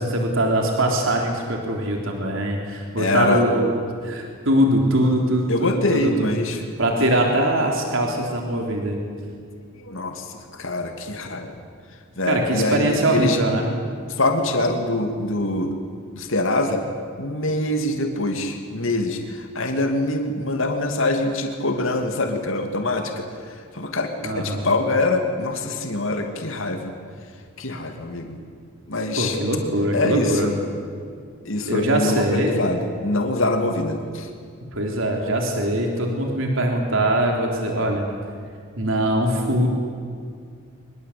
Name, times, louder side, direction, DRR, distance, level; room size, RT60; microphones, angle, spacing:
voice 1, 0.0-3.7 4.0-6.3 6.8-9.0 12.3-13.7 24.2-24.6 29.2-30.5 31.7-32.5 34.7-38.0 38.8-39.7, right 1 dB, 70° right, 1 dB, 3.6 m, -22 dB
voice 2, 3.0-3.4 5.5-6.6 9.7-11.5 12.2-13.4 14.2-15.8 16.1-16.8 17.2-26.9 27.6-28.4 28.9-29.4 29.9-30.5 31.4-34.3, left 2 dB, 70° left, 4 dB, 2.7 m, -24 dB
24.5 x 21.5 x 8.7 m, 2.2 s
head